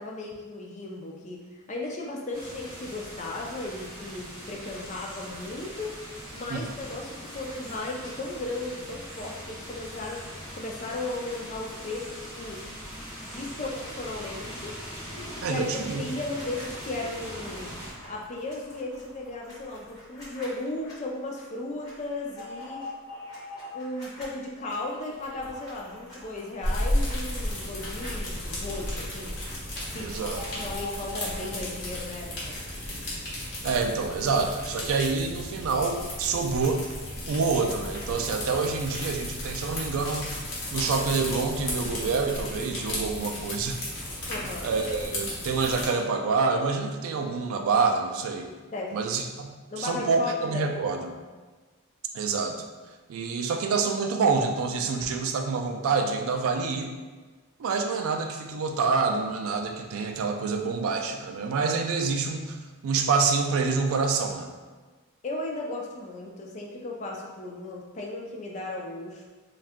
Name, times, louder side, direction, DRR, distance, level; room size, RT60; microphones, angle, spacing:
voice 1, 0.0-5.9 6.3-10.2 10.5-12.6 13.3-14.8 15.4-17.7 18.1-22.9 23.7-29.3 29.9-30.1 30.6-32.5 44.3-44.7 48.7-49.0 49.7-50.6 65.2-69.2, left 2 dB, 30° left, -1 dB, 0.3 m, -35 dB
sound 1, 2.3-17.9, equal, 5° right, 1.5 m, -41 dB
sound 2, 15.1-15.5 15.9-20.9 21.4-21.5 21.8-24.2 24.6-29.5 29.8-31.4, left 2 dB, 15° left, 1.2 m, -45 dB
voice 2, 15.4-16.0 30.0-30.7 33.6-36.8 37.3-40.3 40.7-43.8 44.6-48.5 48.9-51.1 52.1-52.7 53.1-56.9 57.6-64.5, right 4 dB, 70° right, 4 dB, 0.3 m, -27 dB
sound 3, 26.6-45.9, left 1 dB, 50° left, 0.9 m, -34 dB
2.6 x 2.3 x 3.5 m, 1.3 s
head